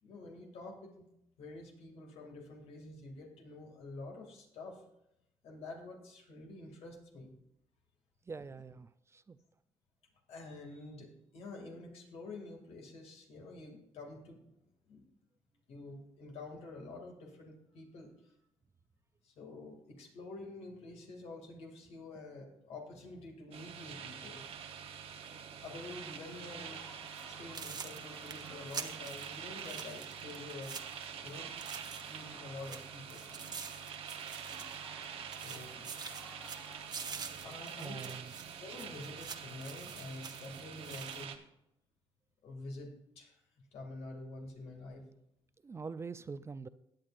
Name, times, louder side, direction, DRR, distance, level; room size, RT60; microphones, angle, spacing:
voice 1, 0.0-1.1 1.4-4.8 5.4-7.3 10.3-14.6 14.9-15.0 15.7-18.3 19.2-24.4 25.0-26.8 27.2-30.9 31.2-31.5 31.8-33.2 35.4-35.8 37.4-41.3 42.4-45.1, left 2 dB, 80° left, 1 dB, 2.5 m, -48 dB
voice 2, 8.2-9.4 37.8-38.3 45.6-46.7, right 4 dB, 25° right, 14 dB, 0.4 m, -44 dB
sound 1, 23.5-41.4, right 8 dB, 70° right, 1.0 m, -46 dB
sound 2, 25.7-36.9, left 2 dB, 30° left, 2.8 m, -58 dB
sound 3, 27.1-27.2 27.5-32.3 32.6-35.1 35.3-41.2, right 6 dB, 40° right, 1.0 m, -47 dB
16.0 x 9.2 x 2.6 m, 0.81 s
cardioid pair, 95°, 10 cm